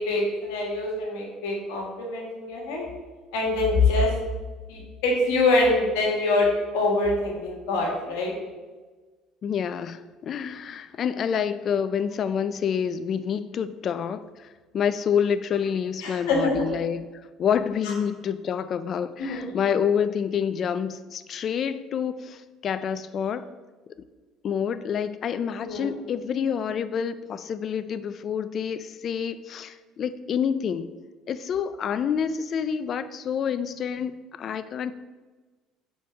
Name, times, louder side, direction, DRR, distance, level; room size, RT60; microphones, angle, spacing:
voice 1, 0.0-2.8 3.3-4.1 4.7-6.5 6.7-8.3 16.0-16.6 19.2-19.5 25.6-25.9, left 2 dB, 80° left, -1 dB, 1.7 m, -24 dB
voice 2, 9.4-14.5 14.7-17.1 17.4-23.5 24.4-30.9 31.3-34.9, left 7 dB, 50° left, 13 dB, 0.4 m, -28 dB
4.4 x 4.4 x 5.8 m, 1.3 s
supercardioid pair, 75°, 0 cm